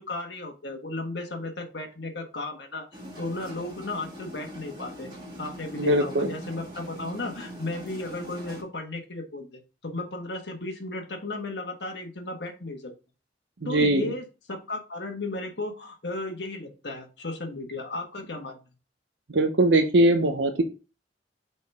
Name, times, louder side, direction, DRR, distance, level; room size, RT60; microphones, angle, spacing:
voice 1, 0.0-2.9 3.2-5.1 5.4-12.9 13.6-18.6, left 2 dB, 65° left, 3 dB, 1.5 m, -35 dB
sound 1, 2.9-8.6, right 1 dB, 25° right, 2.2 m, -42 dB
voice 2, 5.8-6.3 13.6-14.1 19.3-20.6, right 1 dB, 75° right, 6 dB, 0.8 m, -21 dB
6.2 x 4.6 x 3.5 m, 0.32 s
head